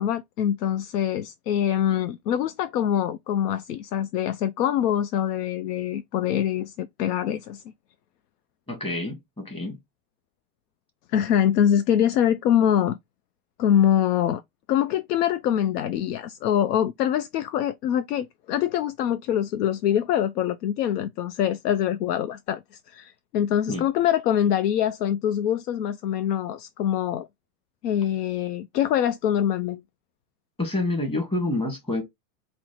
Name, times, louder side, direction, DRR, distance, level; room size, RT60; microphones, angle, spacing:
voice 1, 0.0-7.6 11.1-13.0 13.6-14.4 14.7-22.6 22.9-27.3 27.8-29.8, left 10 dB, 90° left, 0.5 m, -24 dB
voice 2, 8.7-9.8 23.7-23.9 30.6-32.0, left 2 dB, 10° left, 1.4 m, -28 dB
4.4 x 2.0 x 3.9 m
supercardioid pair, 130°, 46 cm